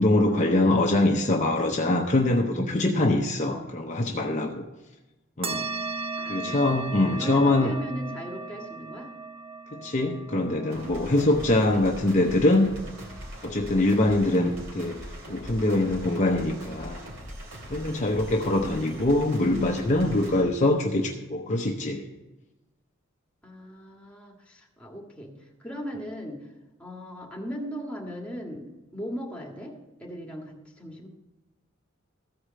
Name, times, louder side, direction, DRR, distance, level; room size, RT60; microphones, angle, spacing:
voice 1, 0.0-4.6 5.4-5.7 6.3-7.8 9.7-12.7 13.4-15.0 15.3-17.0 17.7-22.1, left 2 dB, 35° left, 2 dB, 0.7 m, -23 dB
sound 1, 5.4-14.3, right 3 dB, 30° right, 0.6 m, -38 dB
voice 2, 6.2-9.1 23.4-26.5 26.8-31.1, equal, 5° left, -1 dB, 1.7 m, -39 dB
sound 2, 10.7-20.4, equal, 75° right, 3.0 m, -41 dB
14.5 x 4.9 x 7.5 m, 1.1 s
head